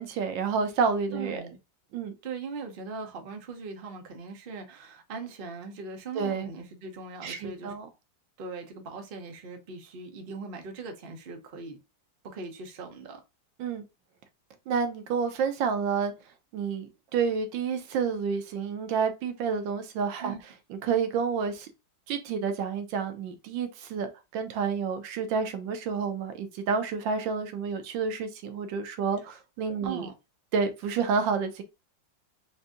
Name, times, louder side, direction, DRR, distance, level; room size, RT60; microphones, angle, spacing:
voice 1, 0.0-1.4 1.9-2.1 6.1-6.5 7.2-7.9 13.6-13.8 14.7-16.1 16.5-20.4 20.7-21.7 22.1-30.1 30.5-31.6, right 5 dB, 80° right, 1.4 m, -29 dB
voice 2, 1.1-1.6 2.2-7.7 8.4-11.8 12.2-13.2 20.2-20.4 29.2-29.4 29.8-30.1, right 4 dB, 55° right, 0.6 m, -40 dB
3.9 x 2.6 x 3.5 m
omnidirectional pair, 2.0 m